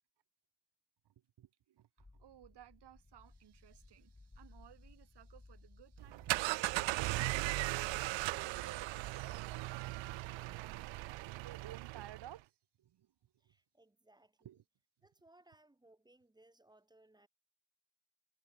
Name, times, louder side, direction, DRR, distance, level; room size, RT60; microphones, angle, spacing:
voice 1, 1.4-8.2 8.5-10.1 10.5-12.5 12.8-13.5 14.4-14.6, right 11 dB, 65° right, 5.4 m, -57 dB
sound 1, 2.0-10.7, left 2 dB, 10° left, 1.3 m, -61 dB
sound 2, 6.0-12.4, right 20 dB, 85° right, 0.8 m, -38 dB
voice 2, 13.4-14.6 15.0-17.3, right 2 dB, 10° right, 7.8 m, -66 dB
cardioid pair, 125°, 44 cm